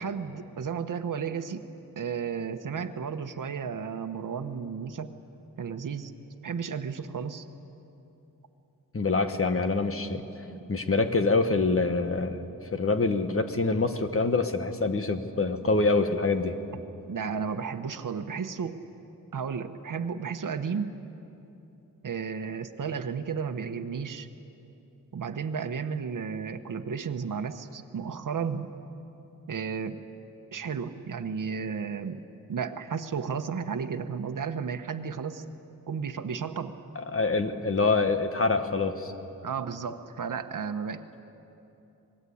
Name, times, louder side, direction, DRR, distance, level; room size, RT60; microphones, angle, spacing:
voice 1, 0.0-1.6 2.0-5.1 5.6-6.1 6.4-7.4 10.5-10.6 17.1-18.8 19.3-20.9 22.0-24.3 25.1-28.7 29.5-30.0 30.5-32.2 32.5-35.4 35.9-36.8 39.4-41.2, right 6 dB, 65° right, 8 dB, 1.2 m, -33 dB
voice 2, 8.9-10.2 10.7-12.4 12.7-16.6 36.9-39.1, left 3 dB, 40° left, 8 dB, 1.5 m, -25 dB
26.0 x 21.0 x 8.6 m, 2.9 s
wide cardioid pair, 120°, 35 cm